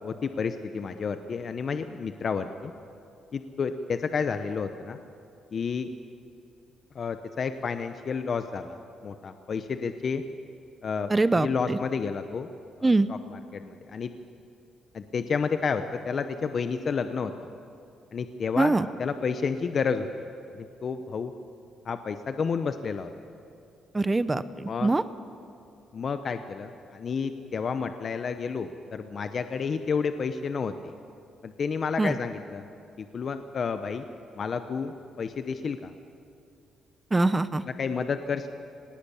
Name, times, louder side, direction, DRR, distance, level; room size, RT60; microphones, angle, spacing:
voice 1, 0.0-2.7 3.3-5.0 5.5-5.9 6.9-10.2 10.8-12.5 12.8-14.1 14.9-17.3 18.1-18.7 19.0-20.1 20.5-21.3 21.8-23.1 24.7-25.0 25.9-30.9 31.4-32.6 33.0-34.0 34.4-35.9 37.6-38.5, left 5 dB, 50° left, 9 dB, 0.9 m, -30 dB
voice 2, 11.1-11.8 12.8-13.1 18.6-18.9 23.9-25.0 32.0-32.1 37.1-37.6, right 2 dB, 20° right, 14 dB, 0.7 m, -23 dB
19.0 x 18.5 x 8.7 m, 2.5 s
cardioid pair, 90°, 0 cm